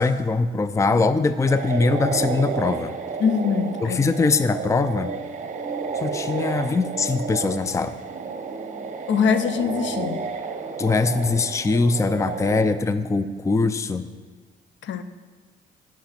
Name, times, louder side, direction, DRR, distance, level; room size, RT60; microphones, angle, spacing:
voice 1, 0.0-2.9 3.8-5.2 5.9-8.0 10.8-14.1, left 3 dB, 15° left, 12 dB, 0.4 m, -22 dB
sound 1, 1.5-12.7, right 5 dB, 40° right, 1.1 m, -31 dB
voice 2, 3.2-4.0 9.1-10.2 14.8-15.0, left 6 dB, 65° left, 11 dB, 0.7 m, -23 dB
13.0 x 6.0 x 5.8 m, 1.4 s
cardioid pair, 90°, 20 cm